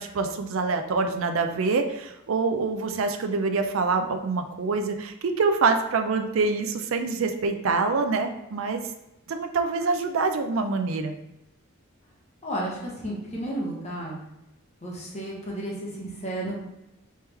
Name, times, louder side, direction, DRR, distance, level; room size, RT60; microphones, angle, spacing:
voice 1, 0.0-8.8 9.3-11.1, right 4 dB, 70° right, 6 dB, 0.4 m, -25 dB
voice 2, 12.4-14.2 14.8-16.5, right 1 dB, 35° left, -4 dB, 1.1 m, -32 dB
3.2 x 3.1 x 3.4 m, 0.89 s
head